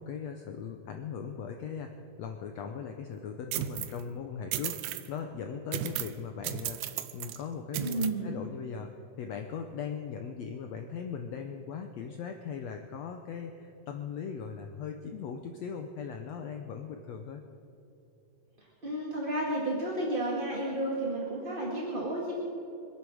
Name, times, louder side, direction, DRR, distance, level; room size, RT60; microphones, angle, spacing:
voice 1, 0.0-6.8 7.1-17.4, left 6 dB, 75° left, 5 dB, 1.6 m, -39 dB
sound 1, 3.5-4.0 4.5-5.1 5.7-6.2 6.4-7.4 7.7-8.1, right 12 dB, 80° right, 2.1 m, -34 dB
voice 2, 7.8-8.4 18.8-22.3, right 1 dB, 20° right, -4 dB, 1.4 m, -32 dB
25.0 x 8.6 x 6.3 m, 2.9 s
omnidirectional pair, 3.8 m